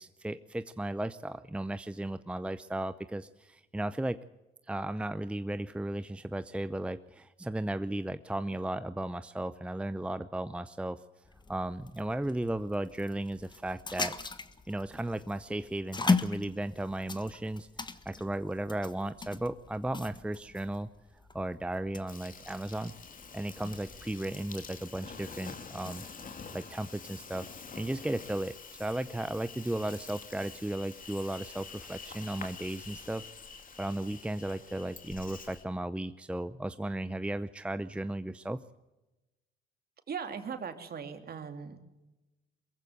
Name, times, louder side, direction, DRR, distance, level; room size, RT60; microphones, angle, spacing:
voice 1, 0.0-4.2 4.7-11.0 11.5-14.1 14.7-20.9 21.3-22.9 23.3-26.0 26.5-27.5 27.8-33.2 33.8-38.6, right 1 dB, 5° right, 12 dB, 0.7 m, -35 dB
sound 1, 11.2-26.1, left 4 dB, 20° left, 1.4 m, -38 dB
Insect, 22.1-35.6, left 5 dB, 45° left, 2.5 m, -47 dB
voice 2, 40.1-41.8, right 6 dB, 50° right, 7 dB, 2.9 m, -39 dB
23.0 x 15.0 x 8.1 m, 1.0 s
cardioid pair, 90°, 20 cm